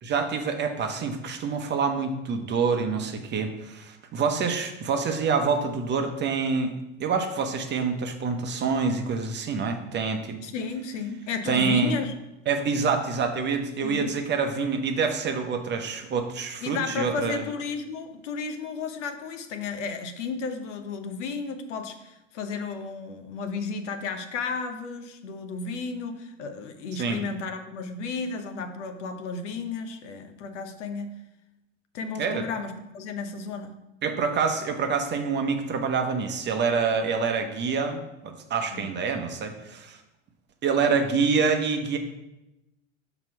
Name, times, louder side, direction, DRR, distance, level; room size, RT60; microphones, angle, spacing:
voice 1, 0.0-6.7 7.0-10.4 11.4-12.0 12.5-17.4 27.0-27.2 32.2-32.5 34.0-40.0 40.6-42.0, right 5 dB, 30° right, 5 dB, 0.9 m, -26 dB
voice 2, 10.4-12.1 13.8-14.1 16.6-31.1 31.9-33.7 38.7-38.8, left 4 dB, 70° left, 7 dB, 0.9 m, -33 dB
6.0 x 4.0 x 5.6 m, 0.95 s
hypercardioid pair, 90°, 37 cm